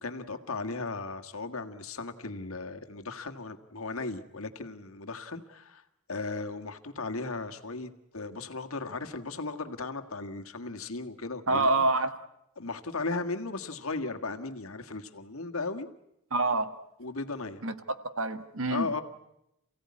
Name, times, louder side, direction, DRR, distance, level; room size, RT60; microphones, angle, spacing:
voice 1, 0.0-5.8 6.1-11.7 12.6-15.9 17.0-17.6 18.7-19.0, left 3 dB, 75° left, 7 dB, 1.8 m, -36 dB
voice 2, 11.5-12.1 16.3-16.7 17.6-17.7 18.2-19.0, right 2 dB, 70° right, 11 dB, 1.6 m, -26 dB
28.5 x 16.5 x 9.7 m, 0.85 s
head